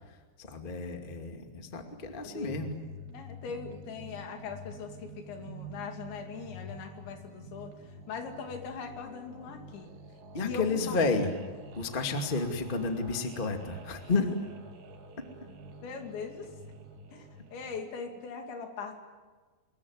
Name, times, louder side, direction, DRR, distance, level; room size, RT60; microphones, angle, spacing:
voice 1, 0.1-2.7 10.3-11.3 11.7-14.3, left 3 dB, 20° left, 4 dB, 1.2 m, -31 dB
sound 1, 1.9-17.8, equal, 50° right, 3.3 m, -48 dB
voice 2, 2.2-2.5 3.1-9.9 10.4-11.0 15.8-16.5 17.1-19.0, left 5 dB, 80° left, 5 dB, 4.9 m, -41 dB
25.0 x 21.5 x 9.7 m, 1.4 s
omnidirectional pair, 5.2 m